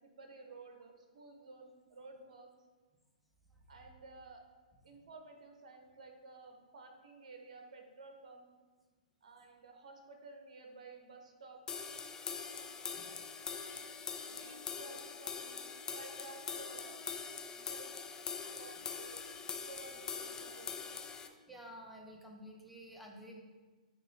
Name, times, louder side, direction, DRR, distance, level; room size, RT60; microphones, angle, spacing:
voice 1, 0.0-2.5 3.7-4.4 4.8-8.5 9.2-11.6 14.2-17.9 18.6-19.2 19.6-21.2, right 3 dB, 60° right, 4 dB, 1.0 m, -54 dB
sound 1, 11.7-21.3, left 6 dB, 15° left, 0.4 m, -43 dB
voice 2, 21.3-23.4, equal, ahead, -1 dB, 0.9 m, -52 dB
8.8 x 3.0 x 4.0 m, 1.3 s
hypercardioid pair, 120°, 4 cm